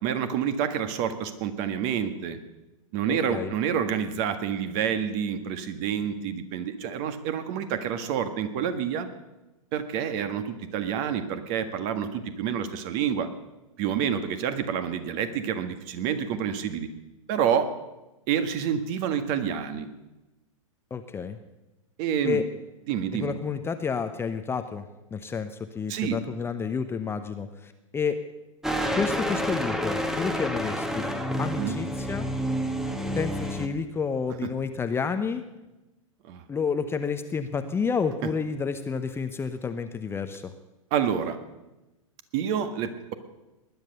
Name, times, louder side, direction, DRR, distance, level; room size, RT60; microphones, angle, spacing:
voice 1, 0.0-2.4 2.9-9.1 9.7-13.3 13.8-16.9 17.3-17.7 18.3-19.9 22.0-22.4 22.9-23.3 25.9-26.2 31.6-31.8 36.3-36.4 40.9-41.4 42.3-43.1, right 8 dB, 40° right, 9 dB, 1.7 m, -28 dB
voice 2, 3.1-3.5 20.9-21.4 22.2-22.4 23.1-24.8 25.1-28.2 29.0-31.1 31.4-32.3 33.1-35.4 36.5-40.5, left 5 dB, 15° left, 8 dB, 0.8 m, -30 dB
sound 1, 28.6-33.7, equal, ahead, 1.3 m, -29 dB
19.5 x 11.0 x 6.7 m, 1.0 s
figure-of-eight pair, 105°, 18 cm